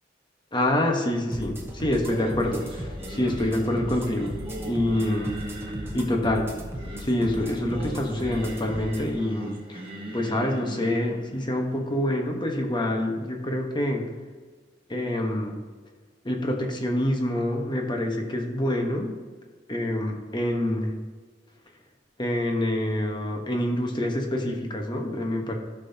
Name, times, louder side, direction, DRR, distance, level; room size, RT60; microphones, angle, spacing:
voice 1, 0.5-4.4 4.6-5.4 5.9-6.5 7.0-9.9 10.1-14.0 14.9-15.6 16.2-19.1 19.7-20.9 22.2-25.5, left 1 dB, 25° left, 2 dB, 1.1 m, -26 dB
sound 1, 1.3-9.1, equal, 15° right, 0.9 m, -37 dB
Singing, 2.0-13.1, right 1 dB, 30° right, 1.4 m, -40 dB
12.0 x 5.7 x 2.8 m, 1.4 s
head